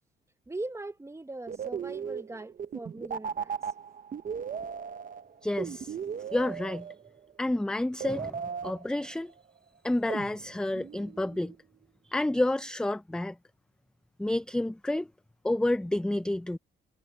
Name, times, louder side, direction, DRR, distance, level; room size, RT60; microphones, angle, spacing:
voice 1, 0.5-3.5 4.2-4.7, right 2 dB, 15° right, 1.3 m, -41 dB
sound 1, 1.5-7.3 8.0-9.4 10.1-11.6, right 7 dB, 45° right, 0.9 m, -37 dB
voice 2, 5.4-6.0 6.3-6.9 7.4-9.3 9.8-11.5 12.1-13.4 14.2-15.1 15.4-16.6, left 1 dB, 5° left, 0.4 m, -29 dB
cardioid pair, 90°, 20 cm